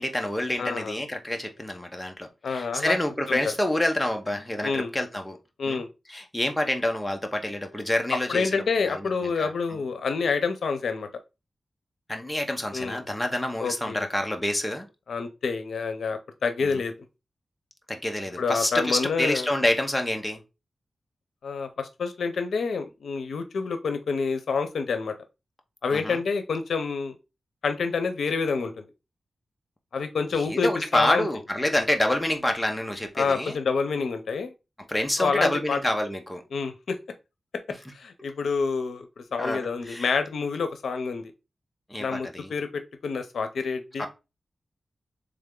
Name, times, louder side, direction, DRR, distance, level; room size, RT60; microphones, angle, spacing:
voice 1, 0.0-5.4 5.7-5.8 6.1-9.8 12.1-14.9 16.6-16.8 17.9-20.4 25.9-26.2 30.3-33.6 34.9-36.4 39.4-40.1 41.9-42.5 44.0-44.1, left 1 dB, 10° left, 0.7 m, -28 dB
voice 2, 0.6-1.0 2.4-3.0 3.3-3.4 4.6-4.9 5.6-5.9 8.3-11.1 12.7-13.0 13.6-14.1 15.1-16.9 18.4-19.5 21.4-25.1 25.8-27.2 27.6-28.8 29.9-31.3 33.2-34.5 35.2-35.8 36.5-37.0 37.9-41.3 42.0-44.1, left 5 dB, 90° left, 0.6 m, -28 dB
3.5 x 3.3 x 3.6 m
wide cardioid pair, 110°, 0 cm